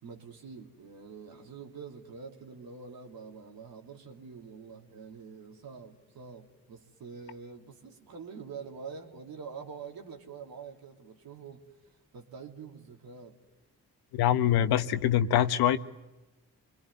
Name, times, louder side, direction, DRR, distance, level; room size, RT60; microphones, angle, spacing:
voice 1, 0.0-11.6 12.1-13.4, right 5 dB, 70° right, 3.0 m, -46 dB
voice 2, 14.1-15.8, left 11 dB, 85° left, 1.1 m, -24 dB
27.5 x 22.0 x 9.5 m
supercardioid pair, 50°, 37 cm